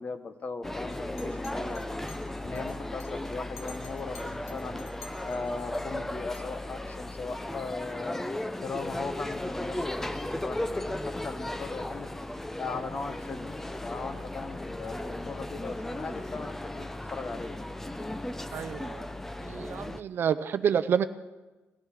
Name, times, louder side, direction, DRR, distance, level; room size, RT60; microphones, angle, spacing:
voice 1, 0.0-2.0 2.4-4.8 5.2-8.3 8.6-12.1 12.6-17.6, left 4 dB, 30° left, 10 dB, 0.9 m, -39 dB
sound 1, 0.6-20.0, left 1 dB, 5° left, 0.5 m, -36 dB
Chink clink, 0.9-5.8 6.3-6.5, left 5 dB, 75° left, 1.8 m, -51 dB
voice 2, 18.5-19.1 19.4-21.0, right 8 dB, 50° right, 13 dB, 0.5 m, -28 dB
18.5 x 14.0 x 4.9 m, 1.2 s
wide cardioid pair, 175°, 5 cm